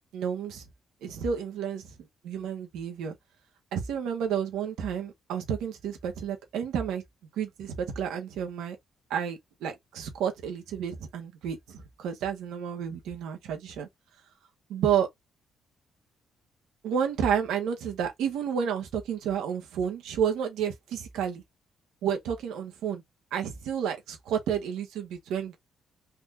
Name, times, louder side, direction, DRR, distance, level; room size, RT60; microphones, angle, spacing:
voice 1, 0.1-0.6 1.0-1.9 2.2-3.1 3.7-7.0 7.4-8.8 9.1-13.9 14.7-15.1 16.8-21.4 22.0-23.0 23.3-25.6, right 8 dB, 85° right, 1.5 m, -31 dB
4.1 x 2.9 x 2.6 m
cardioid pair, 90°, 0 cm